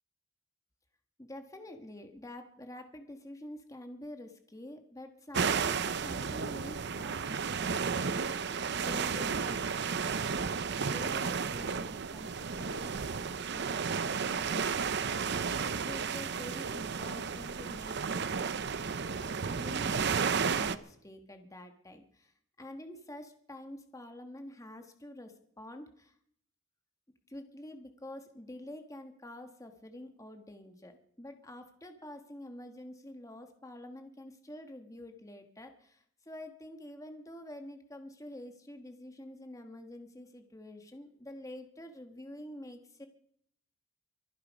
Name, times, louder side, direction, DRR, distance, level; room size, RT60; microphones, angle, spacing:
voice 1, 1.2-10.3 10.7-22.3 22.6-26.1 27.3-43.1, left 1 dB, 15° left, 6 dB, 1.4 m, -48 dB
sound 1, 5.3-20.8, right 5 dB, 55° right, 0.7 m, -33 dB
24.0 x 9.8 x 5.3 m, 0.66 s
head